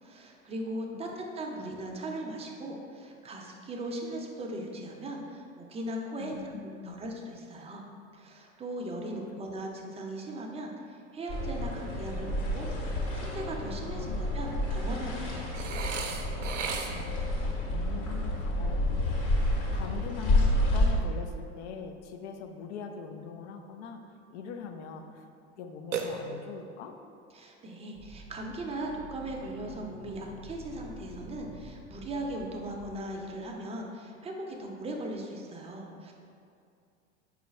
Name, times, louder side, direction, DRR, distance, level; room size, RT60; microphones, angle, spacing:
voice 1, 0.0-6.3 6.8-7.8 8.1-15.7 27.3-36.1, right 1 dB, 15° right, 1 dB, 0.5 m, -38 dB
voice 2, 6.2-6.9 14.0-14.2 16.9-18.8 19.7-24.0 24.3-25.3 25.6-26.9, left 5 dB, 70° left, 6 dB, 0.5 m, -42 dB
sound 1, 11.3-20.9, left 1 dB, 55° left, 1.3 m, -29 dB
Burping eructation, 15.5-17.2 25.9-26.7, right 5 dB, 90° right, 0.5 m, -35 dB
sound 2, 28.0-33.0, right 1 dB, 30° left, 0.7 m, -48 dB
4.4 x 2.5 x 4.0 m, 2.4 s
hypercardioid pair, 85°, 36 cm